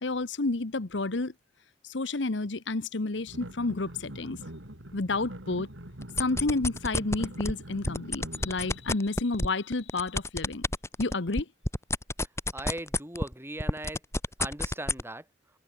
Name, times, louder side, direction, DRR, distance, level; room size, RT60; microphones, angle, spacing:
voice 1, 0.0-1.3 1.8-4.4 4.9-5.7 6.2-10.6 11.0-11.5, left 3 dB, 70° left, 1.1 m, -30 dB
sound 1, 3.3-8.9, right 1 dB, 85° right, 5.8 m, -44 dB
sound 2, 6.0-7.5 7.8-13.3 13.6-15.0, left 2 dB, 15° left, 2.7 m, -29 dB
voice 2, 12.5-14.0 14.4-15.2, right 1 dB, 15° right, 6.5 m, -38 dB
head